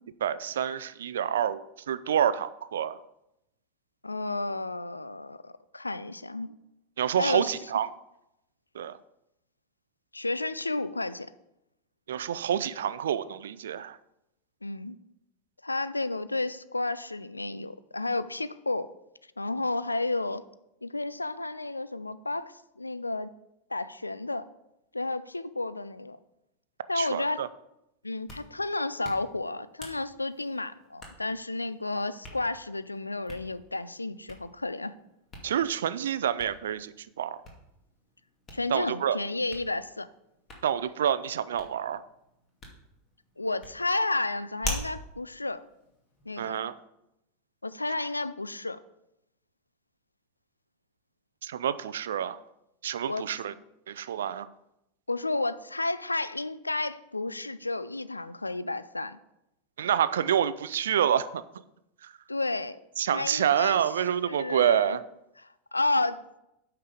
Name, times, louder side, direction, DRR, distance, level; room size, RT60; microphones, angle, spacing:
voice 1, 0.2-3.0 7.0-7.9 8.7-9.0 12.1-14.0 27.0-27.5 35.4-37.4 38.7-39.2 40.6-42.0 46.4-46.7 51.4-52.4 52.8-53.5 53.9-54.5 59.8-61.4 62.0-62.1 63.0-65.0, right 9 dB, 65° right, 15 dB, 0.4 m, -28 dB
voice 2, 4.0-6.5 7.2-7.5 10.1-11.3 14.6-15.0 15.6-18.9 19.4-20.4 20.8-23.3 23.7-24.5 24.9-26.2 26.9-27.5 28.0-34.9 38.5-40.1 43.4-45.6 46.3-46.7 47.6-48.8 53.1-53.3 55.1-59.2 62.3-62.8 63.1-63.8 64.2-65.0 65.7-66.2, left 2 dB, 85° left, 14 dB, 0.4 m, -32 dB
Hands, 28.0-46.6, left 2 dB, 25° left, 2.2 m, -45 dB
8.8 x 5.8 x 5.0 m, 0.85 s
figure-of-eight pair, 85°, 0 cm